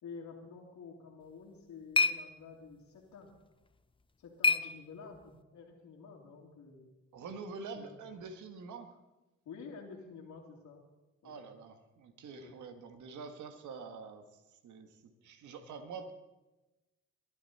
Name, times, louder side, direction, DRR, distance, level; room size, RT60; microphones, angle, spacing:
voice 1, 0.0-3.3 4.2-6.9 7.7-8.0 9.4-10.8 11.2-11.5 12.4-12.6, left 5 dB, 80° left, -6 dB, 2.9 m, -50 dB
sound 1, 1.2-5.4, left 3 dB, 15° left, 0.6 m, -34 dB
voice 2, 7.1-9.0 11.2-16.1, right 4 dB, 75° right, 7 dB, 1.8 m, -46 dB
22.0 x 11.5 x 4.3 m, 1.1 s
cardioid pair, 90°, 30 cm